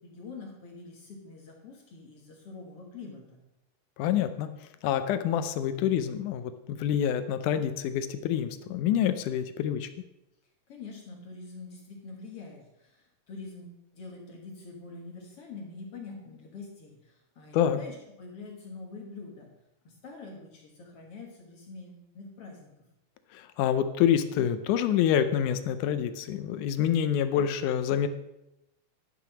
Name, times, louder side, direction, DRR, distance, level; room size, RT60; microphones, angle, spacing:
voice 1, 0.0-3.4 10.7-19.5 19.8-22.7, left 3 dB, 55° left, 0 dB, 2.1 m, -45 dB
voice 2, 4.0-4.5 4.8-9.9 17.5-17.8 23.3-28.1, left 9 dB, 80° left, 10 dB, 2.0 m, -27 dB
11.0 x 5.9 x 5.8 m, 0.90 s
omnidirectional pair, 3.7 m